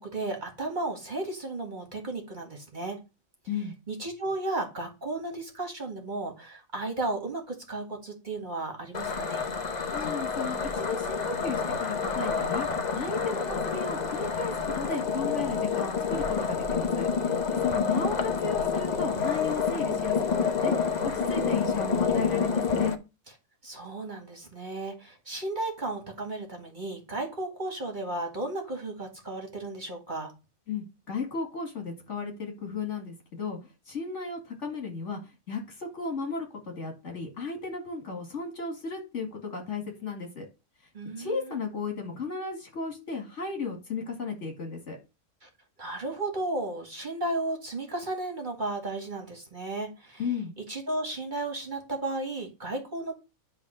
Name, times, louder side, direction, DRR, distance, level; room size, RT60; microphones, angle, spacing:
voice 1, 0.0-3.0 3.9-9.5 23.6-30.3 40.9-41.6 45.4-45.5 45.8-50.2 50.7-53.1, right 2 dB, 35° right, 2 dB, 1.8 m, -34 dB
sound 1, 8.9-23.0, left 5 dB, 35° left, 0.9 m, -28 dB
voice 2, 9.9-12.7 12.9-17.1 17.5-23.0 30.7-33.6 33.9-35.2 35.5-40.5 41.2-45.0 50.2-50.5, left 4 dB, 55° left, 3 dB, 2.5 m, -34 dB
10.5 x 3.5 x 6.3 m, 0.28 s
omnidirectional pair, 1.5 m